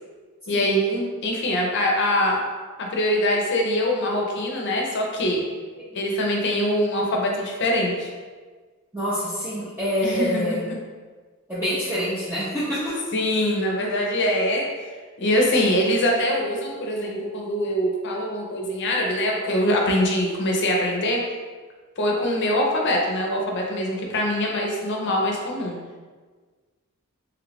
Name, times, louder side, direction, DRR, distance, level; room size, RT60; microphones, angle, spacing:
voice 1, 0.5-2.4 2.8-5.4 5.9-8.1 10.0-10.6 13.1-14.6 15.2-21.2 22.0-25.8, left 1 dB, 55° left, 0 dB, 0.6 m, -23 dB
voice 2, 8.9-10.6 11.5-13.0, equal, 10° right, -12 dB, 0.6 m, -26 dB
3.1 x 2.4 x 3.3 m, 1.4 s
head